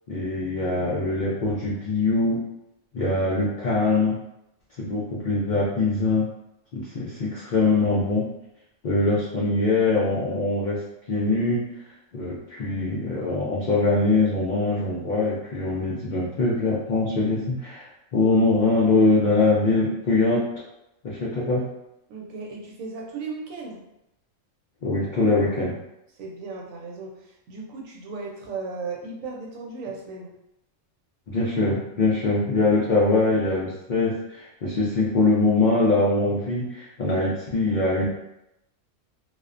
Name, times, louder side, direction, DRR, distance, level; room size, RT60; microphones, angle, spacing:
voice 1, 0.1-2.4 2.9-4.2 4.8-6.2 6.7-8.3 8.8-10.8 11.1-11.6 12.1-20.4 21.0-21.6 24.8-25.8 31.3-38.1, left 3 dB, 85° left, -5 dB, 0.4 m, -23 dB
voice 2, 22.1-23.8 26.1-30.3, right 4 dB, 90° right, -1 dB, 1.0 m, -36 dB
2.4 x 2.1 x 2.4 m, 0.87 s
omnidirectional pair, 1.3 m